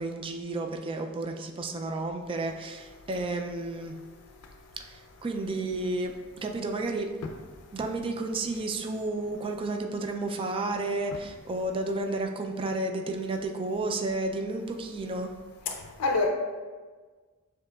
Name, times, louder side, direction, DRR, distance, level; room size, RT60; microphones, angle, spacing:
voice 1, 0.0-4.0 4.8-7.1 7.7-15.3, right 2 dB, 25° right, 4 dB, 0.3 m, -32 dB
voice 2, 15.7-16.3, left 3 dB, 85° left, 3 dB, 0.4 m, -27 dB
6.7 x 2.8 x 2.3 m, 1.4 s
head